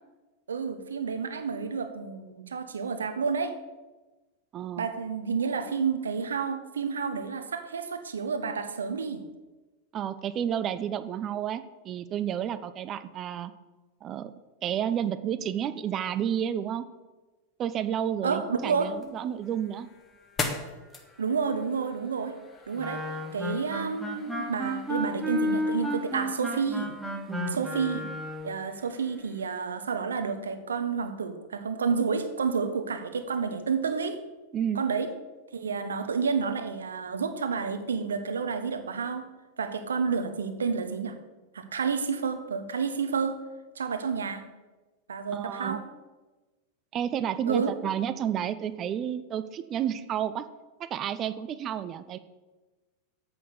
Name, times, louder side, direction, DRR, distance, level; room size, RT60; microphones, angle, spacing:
voice 1, 0.5-3.5 4.8-9.2 18.2-18.9 21.2-22.4 22.7-23.0 23.3-27.0 27.5-28.1 28.4-34.2 34.7-35.1 35.5-39.3 39.6-41.2 41.5-43.4 43.8-44.5 45.1-45.8 47.5-47.7, right 5 dB, 70° right, 9 dB, 0.9 m, -30 dB
voice 2, 4.5-4.9 9.9-13.5 14.0-14.3 14.6-16.8 17.6-19.9 27.3-27.7 34.5-34.8 45.3-45.8 46.9-50.5 50.8-52.2, right 9 dB, 30° right, 13 dB, 0.6 m, -31 dB
sound 1, 18.7-29.7, left 3 dB, 20° left, 1.3 m, -43 dB
Wind instrument woodwind instrument, 22.8-28.5, equal, ahead, 1.7 m, -32 dB
7.6 x 6.0 x 6.8 m, 1.2 s
figure-of-eight pair, 90°, 0 cm